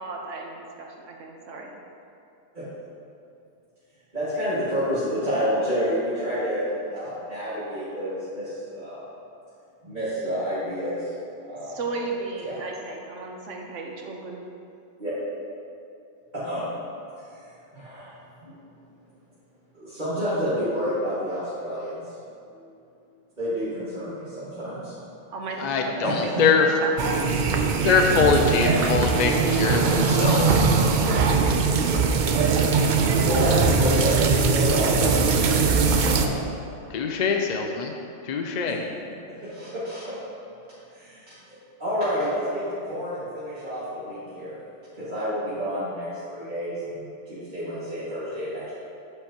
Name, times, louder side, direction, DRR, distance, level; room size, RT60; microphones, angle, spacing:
voice 1, 0.0-1.7 11.6-14.4 25.3-26.5 26.8-26.9, right 3 dB, 80° right, 0 dB, 1.3 m, -34 dB
voice 2, 4.1-9.0 9.8-11.7 12.4-12.6 15.0-15.1 16.4-16.7 17.3-17.4 17.7-18.1 19.8-22.0 22.5-22.7 23.4-24.9 26.0-26.4 33.2-36.3 38.6-38.7 39.4-40.0 40.9-41.3 41.8-44.6 45.0-48.7, equal, 40° right, -14 dB, 2.2 m, -29 dB
voice 3, 25.6-26.7 27.8-30.7 36.9-37.9 38.2-38.8, left 5 dB, 55° left, 3 dB, 0.5 m, -23 dB
sound 1, 27.0-36.3, right 4 dB, 55° right, 0.6 m, -21 dB
9.2 x 7.9 x 2.9 m, 2.6 s
omnidirectional pair, 1.2 m